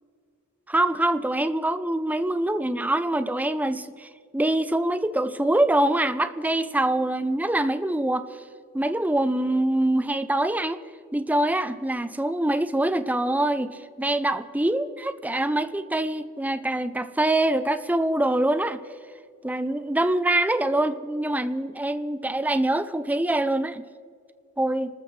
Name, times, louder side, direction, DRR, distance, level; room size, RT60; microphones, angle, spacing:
voice 1, 0.7-8.3 8.7-10.8 11.1-18.8 19.4-23.8 24.6-24.9, right 1 dB, 5° right, 12 dB, 0.5 m, -24 dB
30.0 x 13.5 x 3.2 m, 2.1 s
head